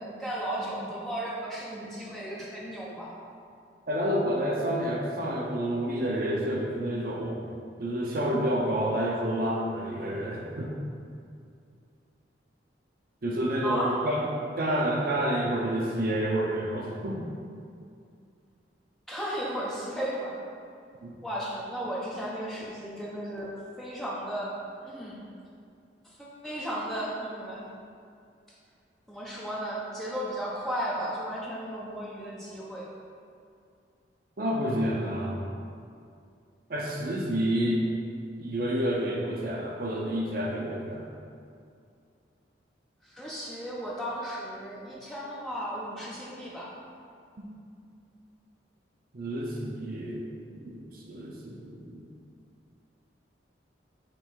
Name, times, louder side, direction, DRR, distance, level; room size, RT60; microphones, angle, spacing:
voice 1, 0.0-3.1 13.6-14.0 19.1-20.3 21.2-24.6 24.8-25.2 26.0-27.7 29.1-32.9 43.0-46.7, equal, ahead, -7 dB, 0.9 m, -35 dB
voice 2, 3.9-7.4 7.8-10.7 13.2-14.3 14.6-17.2 21.0-21.1 34.4-35.5 36.7-37.8 38.4-41.1 47.4-47.5 49.1-50.3 50.5-52.1, right 1 dB, 50° right, -2 dB, 0.6 m, -29 dB
6.7 x 3.3 x 4.6 m, 2.4 s
head